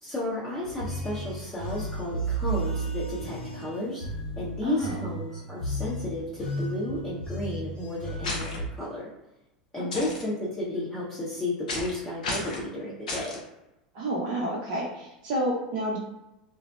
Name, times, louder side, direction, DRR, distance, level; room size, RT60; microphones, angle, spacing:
voice 1, 0.0-4.0 4.4-9.1 9.7-13.3, left 1 dB, 20° left, -7 dB, 0.7 m, -33 dB
sound 1, 0.6-8.7, right 2 dB, 60° left, 1.3 m, -34 dB
voice 2, 4.6-5.0 9.7-10.0 13.9-16.0, right 1 dB, 55° right, -5 dB, 0.6 m, -30 dB
sound 2, 8.2-8.6 9.9-10.2 11.7-12.0 12.2-12.6 13.1-13.4, left 2 dB, 75° left, 0.6 m, -32 dB
2.6 x 2.0 x 2.2 m, 0.93 s
hypercardioid pair, 85°, 4 cm